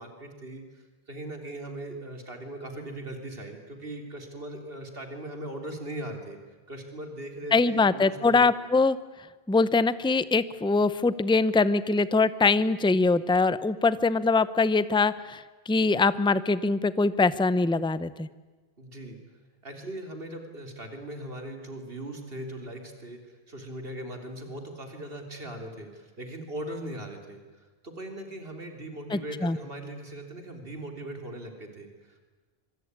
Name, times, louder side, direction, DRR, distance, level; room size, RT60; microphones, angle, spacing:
voice 1, 0.0-6.4 6.7-8.5 18.8-19.2 19.6-32.2, right 1 dB, 65° right, 5 dB, 3.8 m, -39 dB
voice 2, 7.5-9.0 9.5-18.3 29.1-29.6, left 3 dB, 5° left, 16 dB, 0.6 m, -23 dB
25.0 x 24.5 x 9.7 m, 1.3 s
omnidirectional pair, 1.0 m